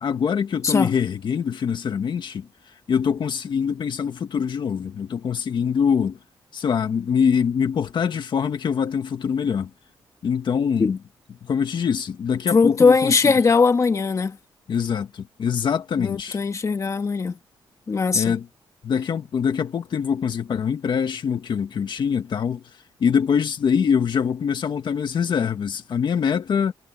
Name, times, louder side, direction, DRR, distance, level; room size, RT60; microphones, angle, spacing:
voice 1, 0.0-2.5 2.9-6.2 6.5-9.7 10.2-11.0 11.4-13.4 14.7-16.4 18.1-18.5 18.8-22.6 23.0-26.7, left 7 dB, 60° left, 1.8 m, -24 dB
voice 2, 12.5-14.4 16.0-17.4 17.9-18.3, left 4 dB, 35° left, 1.9 m, -19 dB
cardioid pair, 115°, 9 cm